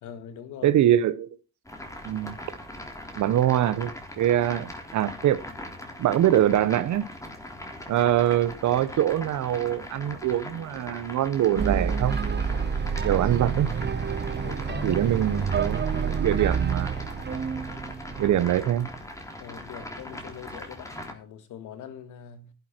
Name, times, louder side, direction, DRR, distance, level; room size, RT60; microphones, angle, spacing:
voice 1, 0.0-0.8 14.4-15.1 19.4-22.5, left 8 dB, 80° left, 1.9 m, -42 dB
voice 2, 0.6-1.4 2.0-2.4 3.1-5.4 6.0-7.0 7.9-12.2 13.0-13.7 14.8-16.9 18.2-18.9, right 11 dB, 75° right, 1.0 m, -24 dB
sound 1, 1.7-21.1, left 1 dB, 10° left, 3.3 m, -40 dB
sound 2, 11.6-18.8, right 6 dB, 35° right, 1.0 m, -28 dB
12.0 x 11.0 x 4.5 m
cardioid pair, 90°, 30 cm